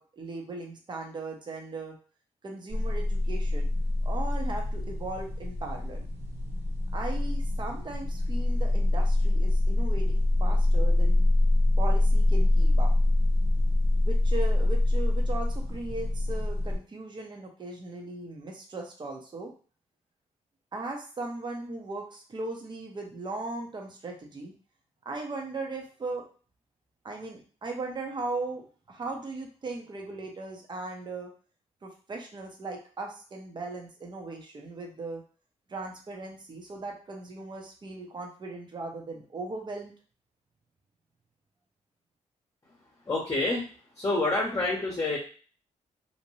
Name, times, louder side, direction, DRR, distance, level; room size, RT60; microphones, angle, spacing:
voice 1, 0.0-2.0 2.4-3.7 4.0-6.0 6.9-11.3 11.8-12.9 14.0-19.5 20.7-24.5 25.0-26.2 27.0-31.3 31.8-35.2 35.7-39.9, right 3 dB, 35° right, 1 dB, 0.8 m, -38 dB
sound 1, 2.7-16.8, left 2 dB, 55° right, 1.2 m, -25 dB
voice 2, 43.1-43.6 43.9-45.2, left 2 dB, 25° left, -3 dB, 0.9 m, -27 dB
2.6 x 2.2 x 3.0 m, 0.39 s
cardioid pair, 80°, 13 cm